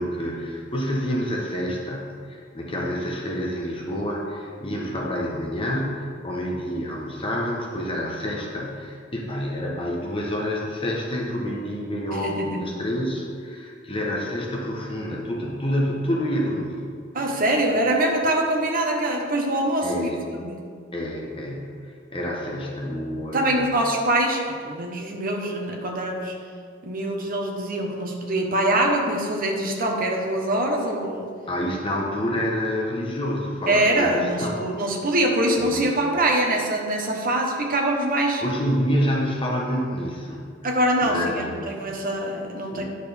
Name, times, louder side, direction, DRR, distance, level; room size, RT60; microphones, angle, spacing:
voice 1, 0.0-2.2 2.5-16.9 19.8-20.2 20.9-23.7 31.5-34.6 35.6-35.9 38.4-40.5 41.0-41.9 42.7-42.8, equal, 30° left, -2 dB, 1.1 m, -28 dB
voice 2, 12.1-12.7 17.1-20.7 23.3-26.4 26.8-31.3 33.7-38.4 40.6-42.8, right 1 dB, 45° right, 1 dB, 1.1 m, -24 dB
10.5 x 6.6 x 3.5 m, 2.2 s
head